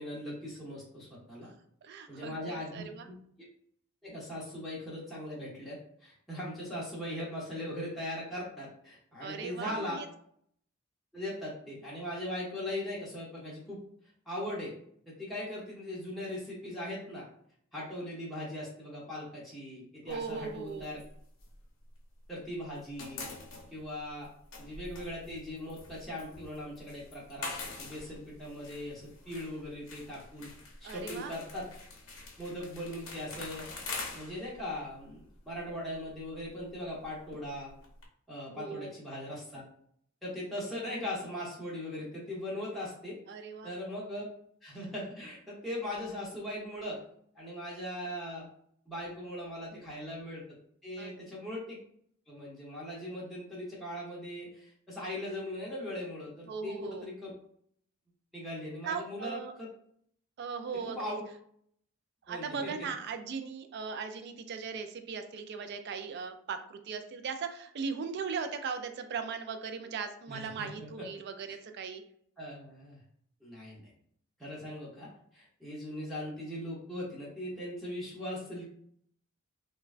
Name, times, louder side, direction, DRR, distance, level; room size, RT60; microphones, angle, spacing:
voice 1, 0.0-1.5 2.1-3.2 4.0-10.0 11.1-13.8 14.3-14.7 15.1-17.3 17.7-21.0 22.3-23.3 23.7-24.3 24.6-30.5 30.8-31.7 32.4-37.7 38.3-39.6 40.2-43.2 43.6-44.2 44.6-47.0 47.3-48.5 48.9-50.4 50.8-51.8 52.3-57.3 58.3-59.7 60.8-61.2 62.3-62.7 70.3-71.1 71.5-71.6 72.4-73.0 73.4-73.9 74.4-78.6, left 1 dB, ahead, -7 dB, 0.7 m, -40 dB
voice 2, 1.8-3.1 9.2-10.1 20.1-20.9 30.8-31.3 38.5-38.9 43.3-43.7 51.0-51.2 56.5-57.1 58.8-59.5 60.4-61.2 62.3-72.0, right 5 dB, 50° right, 8 dB, 0.3 m, -38 dB
sound 1, 20.1-22.3 22.6-38.1, left 3 dB, 65° left, 0.7 m, -46 dB
3.2 x 2.2 x 2.4 m, 0.65 s
head